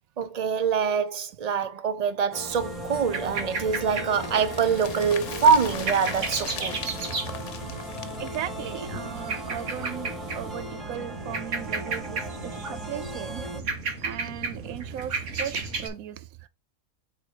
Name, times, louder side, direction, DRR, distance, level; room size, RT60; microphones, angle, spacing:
voice 1, 0.2-6.8, right 6 dB, 45° right, 0.5 m, -24 dB
sound 1, 2.3-13.6, left 1 dB, ahead, 1.6 m, -39 dB
sound 2, 2.5-15.9, right 4 dB, 60° right, 1.6 m, -34 dB
sound 3, 4.1-9.9 10.2-10.3 10.6-10.7, left 8 dB, 60° left, 1.1 m, -40 dB
voice 2, 8.2-13.5 14.0-16.5, right 11 dB, 85° right, 1.1 m, -37 dB
7.2 x 3.3 x 4.5 m
omnidirectional pair, 1.5 m